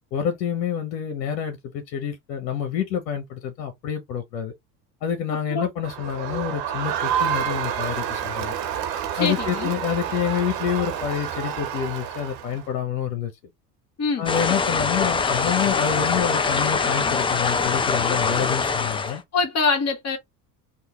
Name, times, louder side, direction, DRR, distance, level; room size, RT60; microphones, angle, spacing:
voice 1, 0.1-4.5 5.0-8.6 9.2-13.3 14.2-19.2, left 8 dB, 75° left, 1.0 m, -27 dB
Crowd, 5.8-12.7, right 9 dB, 65° right, 1.3 m, -29 dB
voice 2, 9.1-9.7 14.0-14.3 19.1-20.2, left 4 dB, 30° left, 1.9 m, -24 dB
sound 1, 14.3-19.2, left 4 dB, 10° left, 0.4 m, -23 dB
3.5 x 2.5 x 3.0 m
hypercardioid pair, 80°, 50 cm